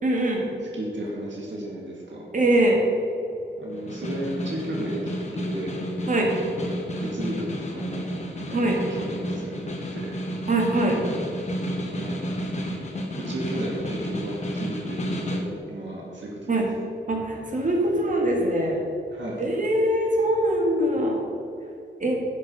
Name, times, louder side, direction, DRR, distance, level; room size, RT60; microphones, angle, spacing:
voice 1, 0.0-0.5 2.3-2.8 6.1-6.3 8.5-8.8 10.5-11.0 16.5-16.7 17.1-18.8 19.4-21.2 22.0-22.2, right 1 dB, 40° right, 0 dB, 2.0 m, -22 dB
voice 2, 0.7-2.2 3.6-5.8 6.5-8.6 8.9-10.2 11.8-12.2 12.6-15.0 15.3-16.4 19.1-19.4, right 1 dB, 75° right, -3 dB, 2.1 m, -34 dB
Snare drum, 3.7-15.5, equal, 35° left, 1.3 m, -31 dB
11.5 x 6.5 x 5.6 m, 2.7 s
wide cardioid pair, 150°, 19 cm